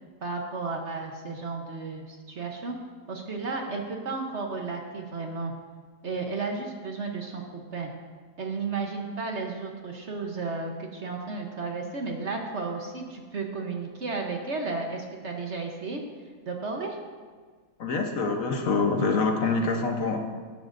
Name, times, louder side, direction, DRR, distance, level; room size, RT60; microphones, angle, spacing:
voice 1, 0.2-2.8 3.1-5.5 6.0-7.9 8.4-16.0 16.5-17.0, right 4 dB, 50° right, 2 dB, 1.1 m, -33 dB
voice 2, 17.8-20.2, left 4 dB, 55° left, 3 dB, 1.3 m, -25 dB
17.0 x 10.5 x 2.6 m, 1.5 s
omnidirectional pair, 1.8 m